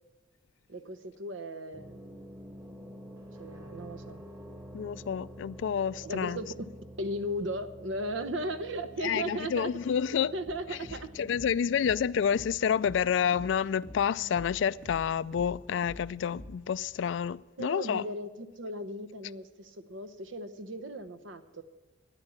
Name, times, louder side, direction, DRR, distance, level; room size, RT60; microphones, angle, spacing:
voice 1, 0.7-2.0 3.4-4.2 6.0-6.5 7.0-9.7 10.3-11.1 17.6-21.6, right 1 dB, 75° right, 0.9 m, -36 dB
sound 1, 1.7-17.4, right 1 dB, 15° right, 1.4 m, -50 dB
voice 2, 4.7-6.4 9.0-10.3 10.7-10.8 11.2-18.1, left 7 dB, 70° left, 0.3 m, -29 dB
sound 2, 10.5-16.6, equal, 40° right, 1.6 m, -48 dB
13.0 x 10.0 x 7.2 m
head